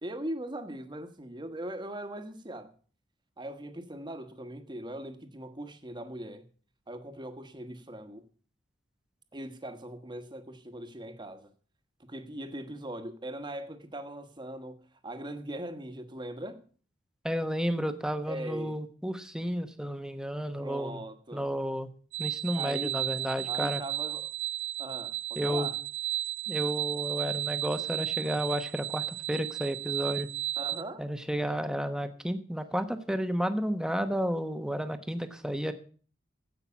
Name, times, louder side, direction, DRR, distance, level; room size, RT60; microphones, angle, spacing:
voice 1, 0.0-2.7 3.4-6.5 6.9-8.3 9.3-11.5 12.0-16.6 18.3-18.8 20.6-21.5 22.5-23.0 23.5-24.3 24.8-25.8 30.6-31.0, right 1 dB, 25° right, 1.3 m, -40 dB
voice 2, 17.2-21.0 21.3-21.9 22.2-23.8 25.4-25.7 26.5-30.3 31.0-35.7, equal, 5° right, 1.0 m, -32 dB
sound 1, 22.1-30.8, right 12 dB, 70° right, 0.5 m, -34 dB
16.0 x 5.8 x 7.0 m
head